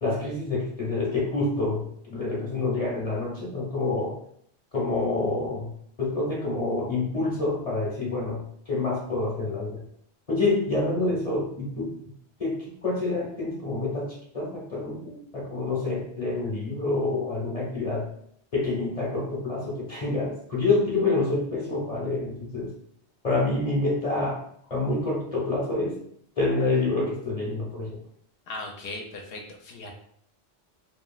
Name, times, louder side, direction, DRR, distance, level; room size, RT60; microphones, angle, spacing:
voice 1, 0.0-4.2 4.7-5.7 6.0-9.8 10.3-12.0 12.4-18.1 18.5-22.7 23.2-24.4 24.7-26.0 26.4-28.0, left 3 dB, 35° left, -5 dB, 0.9 m, -27 dB
voice 2, 28.5-29.9, left 2 dB, 65° left, 2 dB, 0.7 m, -38 dB
2.9 x 2.6 x 2.3 m, 0.66 s
omnidirectional pair, 1.1 m